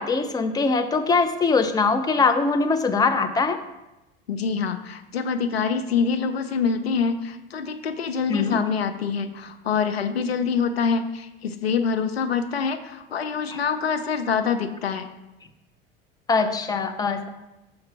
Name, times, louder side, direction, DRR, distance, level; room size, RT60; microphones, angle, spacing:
voice 1, 0.0-3.6 8.3-8.6 13.5-13.6 16.3-17.3, left 4 dB, 15° left, 8 dB, 0.5 m, -22 dB
voice 2, 4.3-15.1, left 6 dB, 80° left, 8 dB, 0.6 m, -25 dB
6.4 x 4.6 x 4.6 m, 0.99 s
figure-of-eight pair, 70°, 30 cm